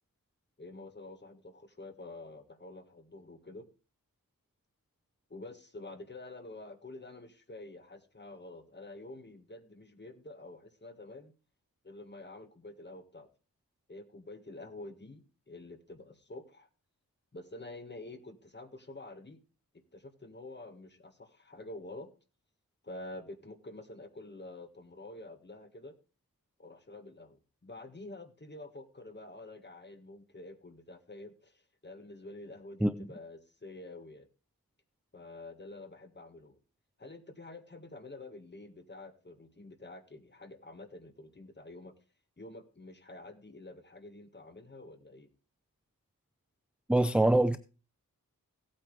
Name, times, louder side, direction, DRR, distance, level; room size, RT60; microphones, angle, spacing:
voice 1, 0.6-3.6 5.3-11.3 11.8-13.3 13.9-16.7 17.3-19.4 19.7-22.1 22.8-26.0 26.6-34.3 35.1-36.6 37.0-41.9 42.4-45.3, left 2 dB, 30° left, 1.7 m, -48 dB
voice 2, 46.9-47.6, right 1 dB, 5° right, 0.5 m, -24 dB
16.5 x 8.7 x 3.3 m
wide cardioid pair, 85°, 35 cm